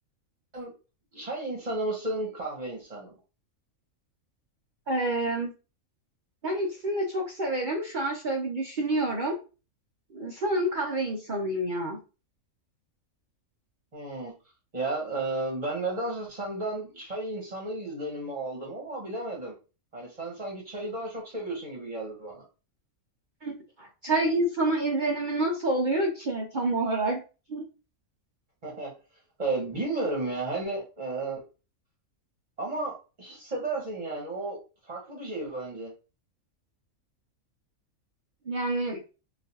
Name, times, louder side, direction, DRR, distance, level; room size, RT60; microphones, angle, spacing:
voice 1, 1.1-3.1 13.9-14.3 14.7-19.5 19.9-22.4 28.6-28.9 29.4-31.4 32.6-34.6 34.9-35.9, right 2 dB, 30° right, -2 dB, 0.9 m, -33 dB
voice 2, 4.9-5.5 6.4-9.4 10.1-12.0 23.4-27.2 27.5-27.6 38.5-39.0, right 2 dB, 55° right, 0 dB, 0.5 m, -28 dB
3.9 x 2.4 x 2.7 m, 0.32 s
omnidirectional pair, 1.5 m